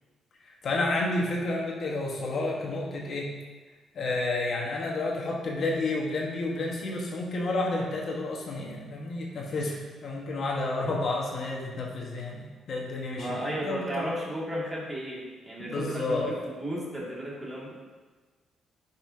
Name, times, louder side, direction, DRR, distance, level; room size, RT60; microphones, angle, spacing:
voice 1, 0.4-3.3 3.9-9.8 10.0-14.1 15.6-16.3, left 2 dB, 55° left, -1 dB, 1.5 m, -30 dB
voice 2, 13.2-17.7, right 1 dB, 20° right, -5 dB, 2.4 m, -34 dB
10.0 x 5.6 x 2.9 m, 1.3 s
cardioid pair, 90°, 0 cm